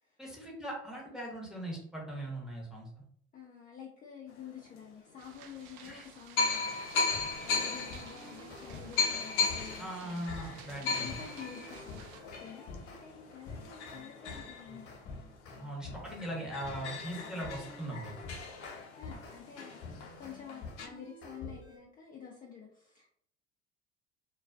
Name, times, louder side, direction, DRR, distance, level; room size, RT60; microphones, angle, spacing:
voice 1, 0.2-2.9 5.8-6.1 9.8-11.2 15.6-18.1, right 1 dB, ahead, -3 dB, 0.9 m, -40 dB
voice 2, 3.3-7.1 7.3-10.4 10.8-14.9 19.0-19.9 20.2-23.1, left 7 dB, 25° left, -2 dB, 0.5 m, -49 dB
sound 1, 4.6-4.7 5.6-5.7 6.4-15.5 15.9-16.0 16.2-20.9, left 4 dB, 85° left, 0.5 m, -36 dB
sound 2, 5.2-12.2, right 7 dB, 60° right, 0.5 m, -54 dB
sound 3, 7.1-9.9 10.3-13.0 13.5-19.4 19.8-21.8, left 3 dB, 40° left, 1.1 m, -48 dB
2.3 x 2.2 x 2.4 m, 0.67 s
hypercardioid pair, 70°, 33 cm